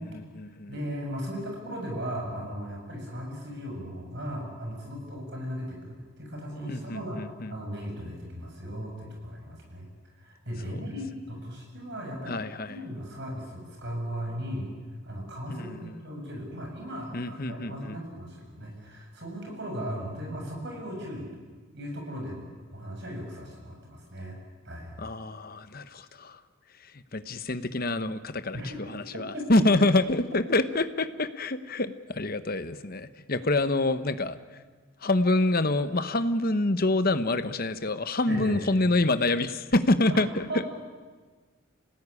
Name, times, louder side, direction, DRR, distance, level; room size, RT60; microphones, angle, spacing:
voice 1, 0.1-0.8 6.7-7.5 10.7-10.8 12.3-12.8 15.5-16.0 17.1-18.0 25.0-26.4 26.8-34.4 35.0-40.6, left 2 dB, 45° left, 12 dB, 1.1 m, -27 dB
voice 2, 0.7-9.9 10.1-12.4 12.7-14.7 15.0-21.3 21.7-24.4 24.6-24.9 28.5-28.8 29.1-29.6 38.3-38.6 40.1-40.2 40.5-40.6, equal, 50° right, 1 dB, 7.3 m, -37 dB
27.0 x 18.5 x 9.9 m, 1.4 s
head